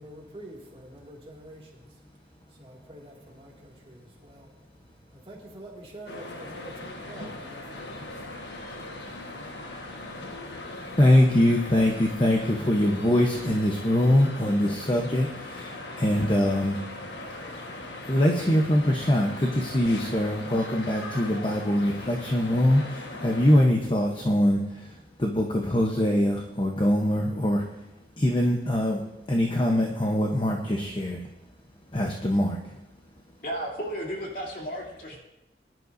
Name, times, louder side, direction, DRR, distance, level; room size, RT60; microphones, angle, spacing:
voice 1, 0.0-9.4, right 1 dB, 30° right, -3 dB, 2.4 m, -47 dB
sound 1, 6.1-23.7, left 2 dB, 80° left, 1.5 m, -39 dB
voice 2, 10.9-16.8 18.1-27.6 28.2-29.0 29.3-31.2 31.9-32.8, left 1 dB, 30° left, 1 dB, 0.9 m, -23 dB
voice 3, 33.4-35.2, equal, 50° left, -2 dB, 3.1 m, -33 dB
21.5 x 11.0 x 2.7 m, 0.94 s
head